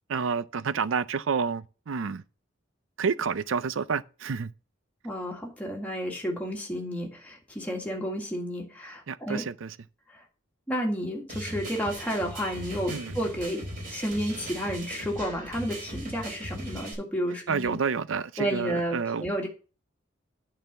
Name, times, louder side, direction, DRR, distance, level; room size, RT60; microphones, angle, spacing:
voice 1, 0.1-2.2 3.0-4.5 9.1-9.8 12.9-13.1 17.5-19.3, right 5 dB, 85° right, 0.5 m, -29 dB
voice 2, 5.0-9.4 10.1-10.2 10.7-17.8 18.4-19.5, equal, 10° left, 1.9 m, -31 dB
sound 1, 11.3-16.9, right 1 dB, 45° right, 4.0 m, -39 dB
9.0 x 4.2 x 6.8 m
head